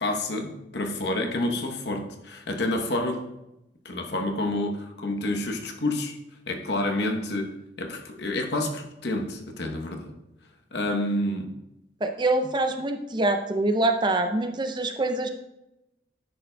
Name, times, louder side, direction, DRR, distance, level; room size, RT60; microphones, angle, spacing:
voice 1, 0.0-3.2 3.8-6.2 6.5-10.2 10.7-11.5, left 1 dB, 70° left, 3 dB, 0.9 m, -29 dB
voice 2, 12.0-15.3, right 2 dB, 25° right, 6 dB, 0.5 m, -25 dB
10.0 x 6.8 x 2.2 m, 0.91 s
head